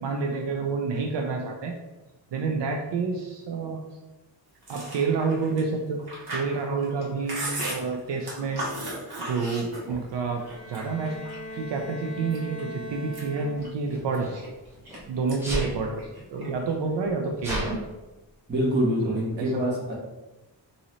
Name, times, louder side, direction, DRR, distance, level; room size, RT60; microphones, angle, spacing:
voice 1, 0.0-1.7 2.3-3.8 4.7-6.0 6.3-8.6 9.2-11.2 11.5-14.5 15.1-17.8 19.1-19.7, right 4 dB, 75° right, 2 dB, 0.5 m, -29 dB
Chewing mastication, 4.6-10.1 10.5-11.5 12.0-12.6 13.0-15.0 15.3-15.6 15.9-16.7, right 1 dB, 60° right, 1.4 m, -36 dB
Sneeze, 9.9-10.0 11.1-11.5 13.5-15.0 15.4-15.8 16.5-16.6 16.8-17.8, equal, 5° right, 0.8 m, -33 dB
Bowed string instrument, 10.3-14.0, left 1 dB, 30° left, 0.7 m, -40 dB
voice 2, 18.5-19.9, equal, 25° right, -5 dB, 1.2 m, -25 dB
3.8 x 2.7 x 3.0 m, 1.1 s
wide cardioid pair, 145°, 43 cm